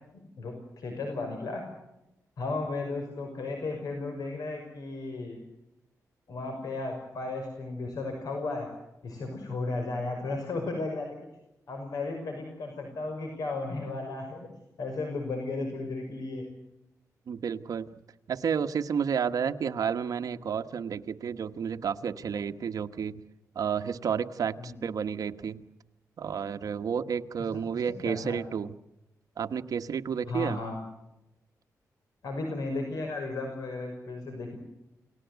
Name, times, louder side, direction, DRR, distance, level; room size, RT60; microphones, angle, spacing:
voice 1, 0.4-1.6 2.4-5.4 6.3-8.7 9.0-11.1 11.7-14.5 14.8-16.4 24.6-24.8 27.5-28.4 30.3-30.8 32.2-34.6, left 3 dB, 80° left, 4 dB, 5.8 m, -34 dB
voice 2, 17.3-17.9 18.3-23.2 23.5-25.6 26.2-28.7 29.4-30.6, right 7 dB, 70° right, 7 dB, 1.3 m, -31 dB
29.5 x 19.0 x 8.2 m, 0.90 s
wide cardioid pair, 125°, 6 cm